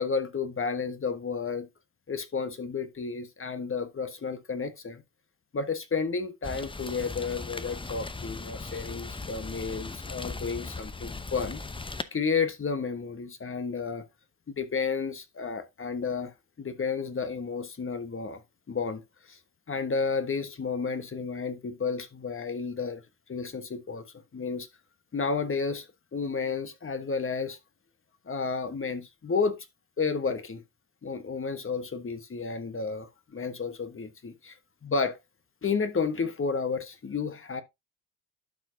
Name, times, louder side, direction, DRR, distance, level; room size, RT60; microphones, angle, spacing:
voice 1, 0.0-1.7 2.1-5.0 5.5-11.6 12.1-14.1 14.5-16.3 16.6-18.4 18.7-19.0 19.3-19.4 19.7-23.0 23.3-24.0 24.3-24.7 25.1-25.9 26.1-27.6 28.3-29.6 30.0-30.6 31.0-34.3 34.8-35.2 35.6-37.6, left 5 dB, 30° left, 1.3 m, -31 dB
Rain, 6.4-12.0, left 3 dB, 10° left, 0.7 m, -38 dB
12.0 x 4.6 x 2.7 m
supercardioid pair, 60°, 41 cm